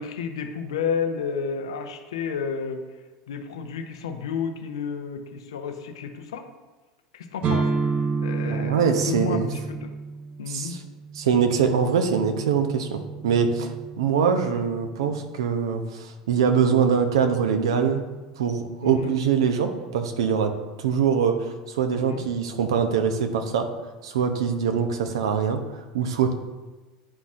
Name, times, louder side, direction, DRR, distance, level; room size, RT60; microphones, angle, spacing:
voice 1, 0.0-2.8 3.3-6.4 7.1-7.7 8.2-9.9 10.4-10.7 18.8-19.1 21.9-22.2, left 6 dB, 75° left, 6 dB, 0.7 m, -31 dB
sound 1, 7.4-15.2, right 4 dB, 45° right, 0.7 m, -31 dB
voice 2, 8.5-9.5 10.5-10.8 11.1-18.0 18.4-20.5 20.8-23.7 24.0-25.6 25.9-26.3, right 6 dB, 75° right, 7 dB, 0.7 m, -23 dB
9.7 x 4.0 x 2.5 m, 1.2 s
hypercardioid pair, 80°, 3 cm